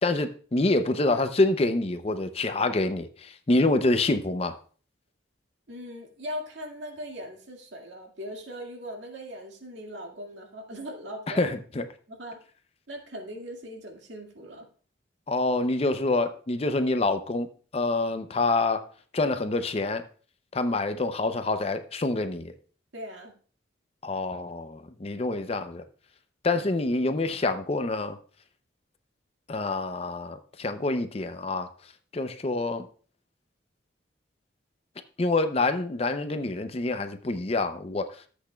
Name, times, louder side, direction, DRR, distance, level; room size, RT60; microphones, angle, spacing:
voice 1, 0.0-4.5 11.4-11.8 15.3-17.5 17.7-18.9 19.1-20.0 20.5-22.5 24.0-25.8 26.4-28.2 29.5-31.7 32.1-32.9 35.2-38.3, left 2 dB, 30° left, 9 dB, 0.5 m, -26 dB
voice 2, 5.7-11.5 12.1-12.4 12.9-14.7 22.9-23.3, equal, 75° right, 1 dB, 2.0 m, -39 dB
13.5 x 8.1 x 2.3 m, 0.42 s
head